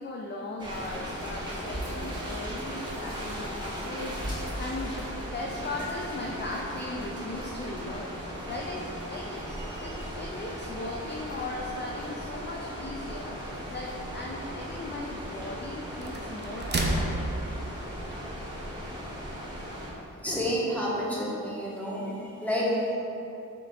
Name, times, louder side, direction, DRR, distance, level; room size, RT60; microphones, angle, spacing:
voice 1, 0.0-9.4 9.8-17.5, left 2 dB, 35° left, -1 dB, 0.5 m, -38 dB
sound 1, 0.6-19.9, equal, 15° right, 1.3 m, -37 dB
sound 2, 9.5-18.4, right 2 dB, 30° right, 0.6 m, -36 dB
voice 2, 20.2-22.9, equal, 5° left, -6 dB, 1.2 m, -29 dB
5.9 x 3.5 x 2.4 m, 2.9 s
cardioid pair, 40°, 33 cm